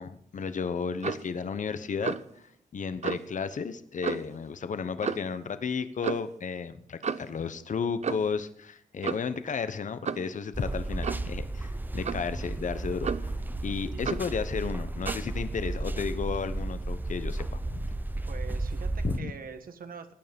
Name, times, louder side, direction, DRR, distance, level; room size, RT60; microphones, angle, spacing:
voice 1, 0.0-2.1 2.7-13.3 13.6-17.9 19.0-19.3, left 5 dB, 60° left, 12 dB, 1.1 m, -33 dB
Clock, 1.0-1.3 2.0-2.3 3.0-3.3 4.0-4.4 5.0-5.3 6.0-6.3 7.0-7.3 8.0-8.4 9.0-9.4 10.0-10.3 11.0-11.3 12.0-12.3 13.0-13.4 14.0-14.3 15.0-15.3, right 6 dB, 50° right, 0.7 m, -33 dB
sound 1, 10.5-19.2, right 2 dB, 15° right, 0.8 m, -33 dB
voice 2, 13.8-14.1 18.1-20.1, right 6 dB, 80° right, 8 dB, 1.7 m, -44 dB
17.0 x 9.4 x 5.3 m, 0.66 s
cardioid pair, 90°, 15 cm